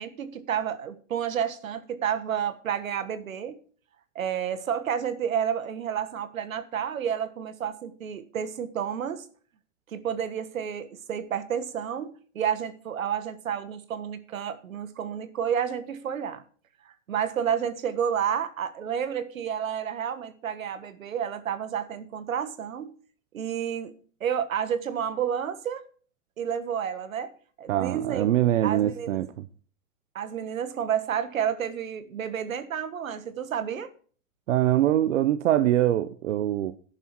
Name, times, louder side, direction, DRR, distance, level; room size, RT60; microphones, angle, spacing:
voice 1, 0.0-3.6 4.1-9.3 9.9-16.4 16.8-23.0 23.3-23.9 24.2-25.8 26.4-27.3 27.6-28.3 28.6-29.2 30.1-33.9, right 8 dB, 80° right, 1.6 m, -30 dB
voice 2, 27.7-29.3 34.5-36.7, right 12 dB, 65° right, 0.9 m, -23 dB
11.0 x 10.0 x 4.6 m
hypercardioid pair, 120°, 40 cm